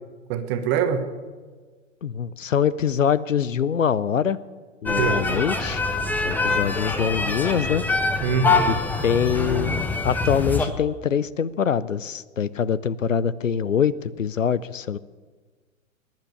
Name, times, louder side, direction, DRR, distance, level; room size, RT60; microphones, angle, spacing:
voice 1, 0.3-1.1 5.0-5.2 8.2-8.7, right 7 dB, 30° right, 8 dB, 1.5 m, -23 dB
voice 2, 2.0-4.4 4.8-5.8 6.2-7.8 8.7-8.8 9.0-15.0, left 7 dB, 75° left, 18 dB, 0.7 m, -24 dB
sound 1, 4.9-10.7, left 3 dB, 5° left, 0.8 m, -24 dB
20.0 x 10.5 x 6.6 m, 1.4 s
figure-of-eight pair, 105°, 40 cm